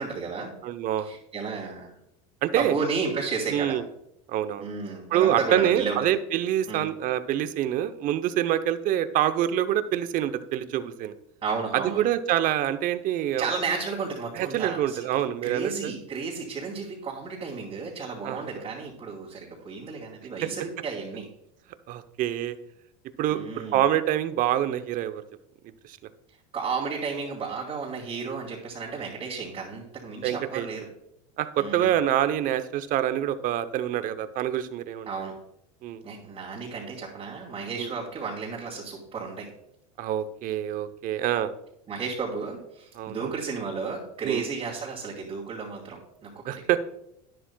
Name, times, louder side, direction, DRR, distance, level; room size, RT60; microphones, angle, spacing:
voice 1, 0.0-0.5 1.0-1.9 2.5-3.8 4.6-6.0 6.7-6.8 11.4-12.0 13.4-21.3 23.3-23.8 26.5-30.8 31.6-32.0 35.1-35.3 36.0-39.5 41.9-46.5, right 5 dB, 30° right, -4 dB, 2.4 m, -33 dB
voice 2, 0.6-1.1 2.4-2.7 3.5-3.8 4.3-4.7 5.1-11.1 11.7-13.5 14.4-15.9 18.2-18.4 21.9-22.6 23.2-23.4 23.7-25.2 25.8-26.0 30.2-30.7 31.4-35.1 35.8-36.0 37.8-37.9 40.0-41.5 43.0-43.3 44.2-44.5 46.5-46.8, right 11 dB, 45° right, 12 dB, 0.7 m, -26 dB
11.5 x 10.0 x 2.3 m, 0.79 s
supercardioid pair, 105°, 19 cm